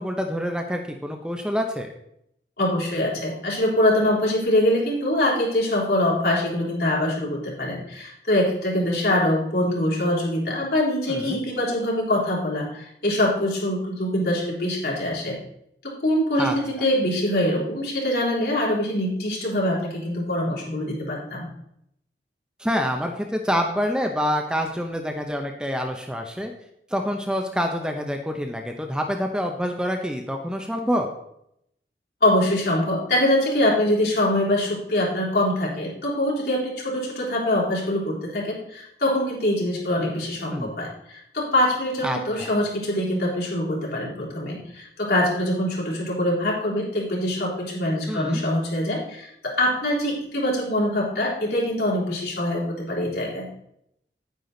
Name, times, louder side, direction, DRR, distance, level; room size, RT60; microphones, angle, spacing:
voice 1, 0.0-1.9 11.1-11.4 16.4-16.5 22.6-26.5 26.9-31.1 40.5-40.8 42.0-42.5 48.1-48.4, equal, 5° right, 3 dB, 0.8 m, -27 dB
voice 2, 2.6-15.4 15.8-21.5 32.2-53.5, left 1 dB, 65° left, -4 dB, 4.0 m, -24 dB
9.8 x 9.5 x 3.9 m, 0.74 s
head